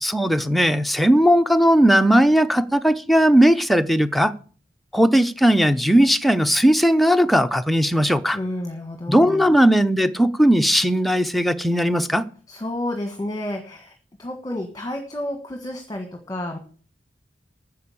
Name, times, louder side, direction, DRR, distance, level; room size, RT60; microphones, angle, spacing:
voice 1, 0.0-4.3 4.9-8.4 9.1-12.2, equal, ahead, 0.6 m, -17 dB
voice 2, 8.3-9.5 12.5-13.9 14.2-16.6, left 1 dB, 20° left, 1.4 m, -30 dB
10.0 x 6.8 x 8.5 m
head